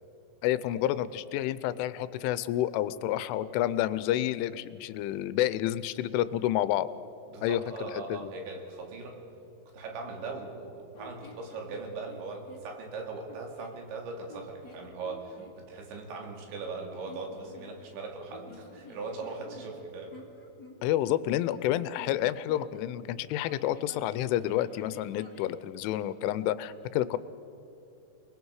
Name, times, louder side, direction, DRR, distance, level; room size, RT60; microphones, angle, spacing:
voice 1, 0.4-6.9 7.4-8.3 20.8-27.2, left 13 dB, 85° left, 14 dB, 3.1 m, -29 dB
voice 2, 7.3-9.2 9.7-20.1, right 3 dB, 70° right, 2 dB, 4.6 m, -40 dB
sound 1, 10.9-12.7 13.2-13.8 14.3-15.5 16.7-18.0 18.3-22.8 23.4-25.6, left 3 dB, 35° left, 1.7 m, -51 dB
29.0 x 20.5 x 4.8 m, 2.9 s
omnidirectional pair, 5.6 m